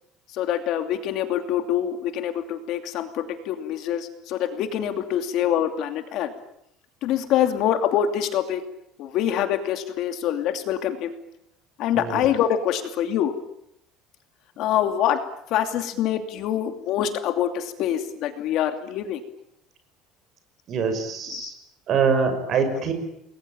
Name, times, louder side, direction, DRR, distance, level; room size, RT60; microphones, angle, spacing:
voice 1, 0.3-6.3 7.0-8.6 9.0-11.1 11.8-13.3 14.6-15.2 15.5-19.2 21.3-21.5, left 10 dB, 50° left, 7 dB, 2.7 m, -25 dB
voice 2, 20.7-21.5 21.9-22.9, right 5 dB, 35° right, 8 dB, 5.6 m, -24 dB
29.5 x 21.5 x 8.8 m, 0.77 s
cardioid pair, 180°, 0 cm